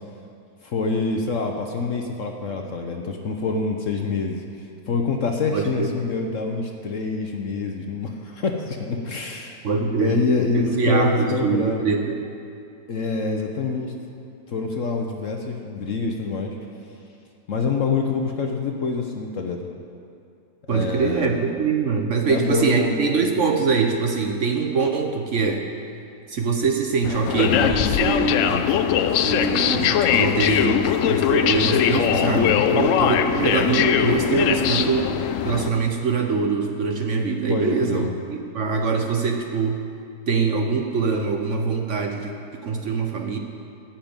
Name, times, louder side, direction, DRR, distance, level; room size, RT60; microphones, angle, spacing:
voice 1, 0.6-4.4 4.9-9.6 10.0-11.9 12.9-13.9 14.5-16.6 17.5-19.7 20.7-21.4 22.3-23.2 32.2-32.6 37.5-38.1, left 4 dB, 55° left, 3 dB, 1.0 m, -26 dB
voice 2, 5.5-5.9 9.6-10.2 10.5-12.2 20.7-25.7 26.3-28.6 29.2-35.1 35.4-39.8 40.3-43.4, right 5 dB, 55° right, 3 dB, 1.0 m, -23 dB
sound 1, 27.0-35.7, left 9 dB, 75° left, 0.7 m, -21 dB
14.5 x 5.9 x 8.8 m, 2.5 s
omnidirectional pair, 1.8 m